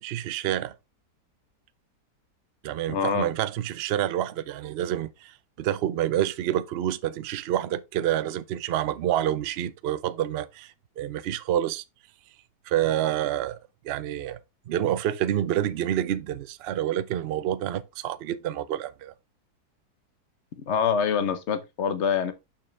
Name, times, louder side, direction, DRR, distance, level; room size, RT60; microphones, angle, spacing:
voice 1, 0.0-0.7 2.6-11.8 12.7-13.6 13.8-14.4 14.7-19.1, right 11 dB, 90° right, 0.5 m, -28 dB
voice 2, 2.9-3.3 20.7-22.3, left 7 dB, 50° left, 1.0 m, -25 dB
6.6 x 5.7 x 3.2 m
omnidirectional pair, 1.7 m